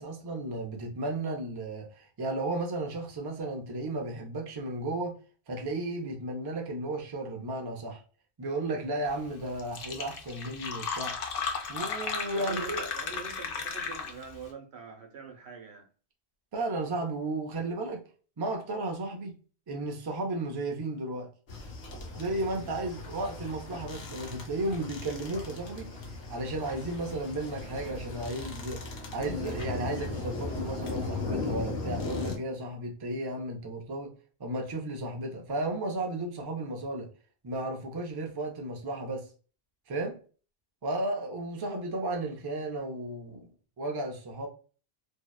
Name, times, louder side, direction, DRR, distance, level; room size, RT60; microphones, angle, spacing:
voice 1, 0.0-5.2 5.5-8.0 8.4-11.1 11.7-12.8 16.5-18.0 18.4-19.3 19.7-21.3 22.2-25.9 26.3-28.8 29.1-34.1 34.4-37.1 37.4-39.3 39.9-40.2 40.8-43.5 43.8-44.5, right 2 dB, 35° right, 0.4 m, -34 dB
Fill (with liquid), 9.3-9.4 9.6-14.4, left 5 dB, 65° left, 0.7 m, -35 dB
voice 2, 12.3-15.9, right 5 dB, 85° right, 1.0 m, -44 dB
sound 1, 21.5-32.4, left 3 dB, 90° left, 1.0 m, -37 dB
2.7 x 2.1 x 2.3 m
omnidirectional pair, 1.1 m